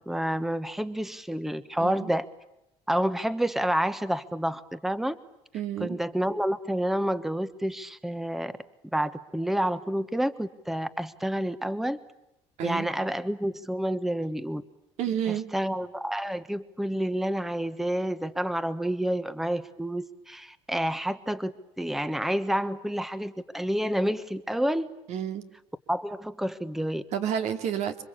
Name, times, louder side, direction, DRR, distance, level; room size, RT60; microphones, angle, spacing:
voice 1, 0.1-2.3 2.9-5.2 5.8-8.5 8.9-12.0 12.6-14.6 15.5-24.9 25.9-27.0, right 1 dB, ahead, 12 dB, 1.2 m, -29 dB
voice 2, 1.8-2.1 5.5-6.0 12.6-12.9 15.0-15.5 25.1-25.5 27.1-28.0, right 9 dB, 70° right, 6 dB, 2.8 m, -30 dB
27.5 x 24.5 x 8.8 m, 0.86 s
cardioid pair, 115°, 12 cm